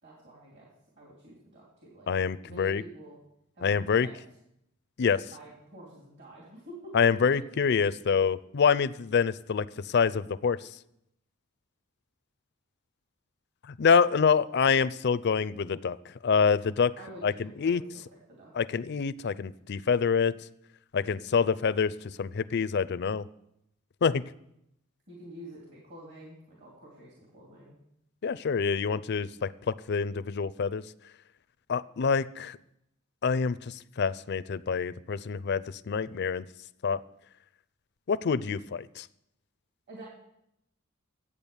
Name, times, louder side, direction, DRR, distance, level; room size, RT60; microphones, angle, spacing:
voice 1, 0.0-0.7 1.0-2.1 2.4-3.2 3.6-4.1 5.3-6.9 7.2-7.4 16.9-18.0 18.3-18.5 25.1-27.8 39.9-40.1, right 1 dB, 55° right, -3 dB, 3.3 m, -48 dB
voice 2, 2.1-2.8 3.6-4.1 5.0-5.2 6.9-10.6 13.7-16.0 16.2-16.9 17.2-17.8 18.5-20.3 20.9-21.9 22.2-23.2 24.0-24.2 28.2-30.8 31.7-32.6 33.2-36.4 36.8-37.0 38.1-39.1, left 6 dB, 55° left, 15 dB, 0.5 m, -26 dB
12.0 x 8.6 x 7.1 m, 0.81 s
head